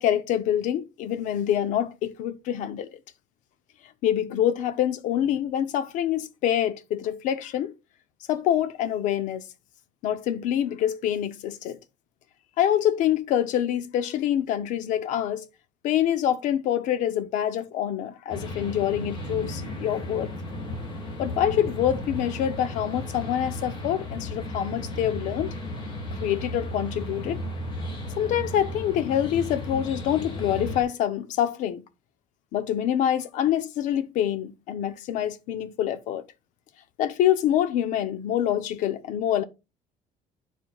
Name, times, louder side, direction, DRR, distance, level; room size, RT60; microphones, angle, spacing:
voice 1, 0.0-2.9 4.0-7.7 8.3-9.5 10.0-11.8 12.6-15.5 15.8-20.3 21.2-25.5 26.2-27.4 28.2-31.8 32.5-36.2 37.0-39.4, left 10 dB, 60° left, 0.7 m, -26 dB
sound 1, 18.3-30.8, left 1 dB, 35° left, 1.8 m, -34 dB
12.5 x 4.6 x 2.3 m
cardioid pair, 175°, 15 cm